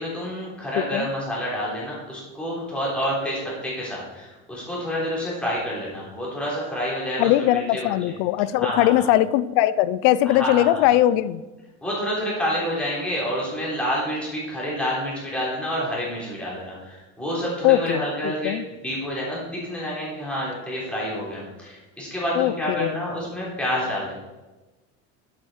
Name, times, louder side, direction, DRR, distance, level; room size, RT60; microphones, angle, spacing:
voice 1, 0.0-8.2 8.5-9.1 10.2-11.0 11.8-24.1, equal, 5° left, -6 dB, 3.5 m, -28 dB
voice 2, 0.8-1.1 7.2-11.4 17.6-18.6 22.4-23.0, left 14 dB, 55° left, 17 dB, 0.5 m, -20 dB
11.0 x 8.5 x 4.4 m, 1.1 s
cardioid pair, 175°, 34 cm